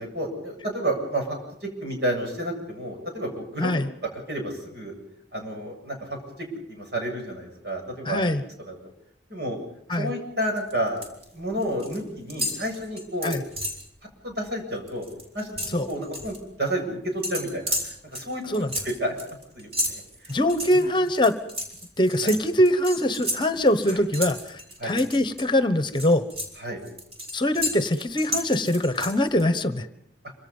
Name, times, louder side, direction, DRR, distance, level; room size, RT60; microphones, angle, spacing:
voice 1, 0.0-3.7 4.1-4.9 5.3-6.0 6.4-8.2 8.6-8.8 9.3-9.6 9.9-11.0 11.3-13.4 14.2-15.1 15.3-19.1 19.5-20.3 20.7-20.9 22.2-22.3 23.9-24.0 24.8-24.9 26.6-26.8, right 1 dB, 65° right, 2 dB, 7.6 m, -31 dB
voice 2, 8.0-8.4 9.9-10.1 13.2-13.4 15.7-15.9 18.5-18.7 20.3-21.3 22.0-26.2 27.3-29.9, left 1 dB, 25° left, 11 dB, 1.2 m, -23 dB
Climbing Gear, 10.6-11.2 11.5-12.0 12.3-13.9 14.3-14.5 14.8-16.4 17.2-25.4 25.8-29.4, equal, 35° right, 5.3 m, -33 dB
27.0 x 25.5 x 5.5 m, 0.73 s
head